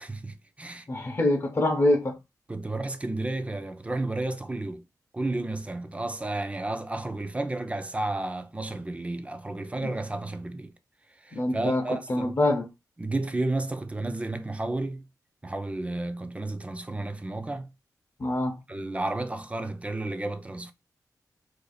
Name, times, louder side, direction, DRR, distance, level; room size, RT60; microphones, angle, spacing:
voice 1, 0.0-0.9 2.5-4.8 5.1-10.7 11.2-12.4 13.0-15.0 15.4-17.7 18.7-20.7, right 2 dB, 20° right, 0.5 m, -32 dB
voice 2, 0.9-2.2 9.8-9.9 11.3-11.8 12.1-12.7 18.2-18.6, left 1 dB, 40° left, 0.7 m, -25 dB
2.6 x 2.4 x 4.0 m
cardioid pair, 80°, 7 cm